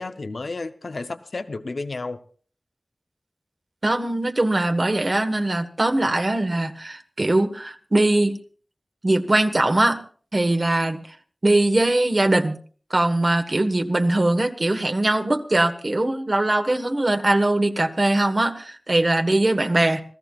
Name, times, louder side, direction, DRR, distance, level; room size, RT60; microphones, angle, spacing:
voice 1, 0.0-2.2, left 3 dB, 90° left, 9 dB, 0.8 m, -32 dB
voice 2, 3.8-8.4 9.0-10.0 10.3-11.0 11.4-12.6 12.9-20.0, right 2 dB, 50° right, 6 dB, 1.5 m, -21 dB
26.5 x 15.5 x 2.4 m, 0.42 s
wide cardioid pair, 60°, 0 cm